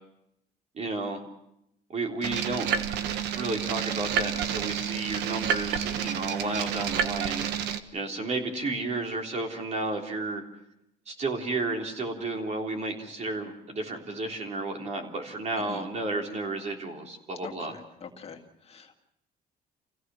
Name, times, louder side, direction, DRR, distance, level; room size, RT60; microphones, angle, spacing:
voice 1, 0.7-1.2 1.9-2.7 3.4-10.4 11.1-17.7, right 2 dB, 40° right, 2 dB, 3.6 m, -32 dB
sound 1, 2.2-7.8, right 8 dB, 85° right, 1.3 m, -29 dB
voice 2, 17.4-18.4 18.6-19.0, left 5 dB, 35° left, 3 dB, 2.2 m, -44 dB
27.5 x 16.0 x 6.3 m, 0.82 s
cardioid pair, 110°, 17 cm